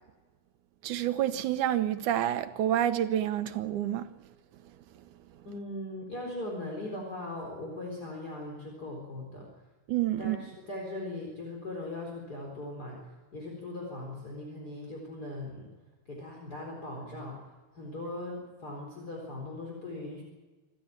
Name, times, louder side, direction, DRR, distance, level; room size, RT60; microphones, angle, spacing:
voice 1, 0.8-4.1 9.9-10.4, right 11 dB, 90° right, 2.5 m, -28 dB
voice 2, 5.4-9.5 10.2-13.0 13.3-15.7 16.1-17.4 17.7-20.2, left 2 dB, 30° left, 4.6 m, -39 dB
26.5 x 14.0 x 9.0 m
omnidirectional pair, 3.4 m